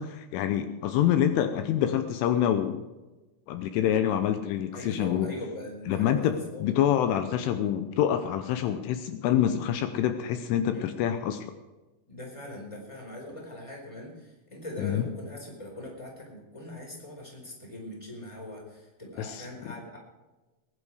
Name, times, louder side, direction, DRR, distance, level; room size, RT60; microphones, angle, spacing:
voice 1, 0.0-2.8 3.5-5.3 5.9-11.5 14.8-15.1 19.2-19.7, left 10 dB, 80° left, 8 dB, 3.2 m, -26 dB
voice 2, 4.7-6.7 10.7-10.9 12.1-20.0, left 1 dB, 5° left, 0 dB, 4.0 m, -41 dB
20.0 x 11.0 x 4.9 m, 1.1 s
omnidirectional pair, 5.8 m